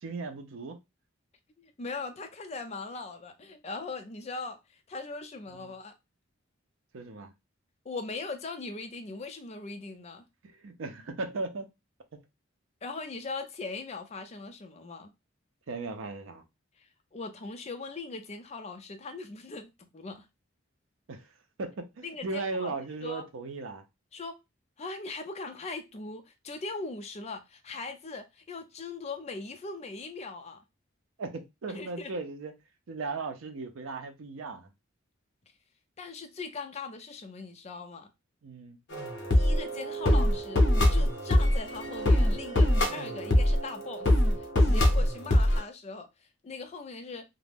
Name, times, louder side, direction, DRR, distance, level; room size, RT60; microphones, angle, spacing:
voice 1, 0.0-0.8 5.6-5.7 6.9-7.3 10.4-11.7 15.7-16.4 21.1-21.3 21.6-23.8 31.2-32.5 32.9-34.7 38.4-38.8, right 3 dB, 80° right, 0.5 m, -37 dB
voice 2, 1.6-4.6 4.9-5.9 7.9-10.3 12.8-15.1 16.8-20.3 22.0-22.7 23.0-23.2 24.1-24.4 24.8-30.6 31.7-32.1 36.0-38.1 39.3-40.6 40.9-44.1 44.4-46.1 46.4-47.2, left 3 dB, 30° left, 0.4 m, -40 dB
sound 1, 38.9-45.6, left 1 dB, 60° left, 0.7 m, -24 dB
2.4 x 2.1 x 3.3 m
head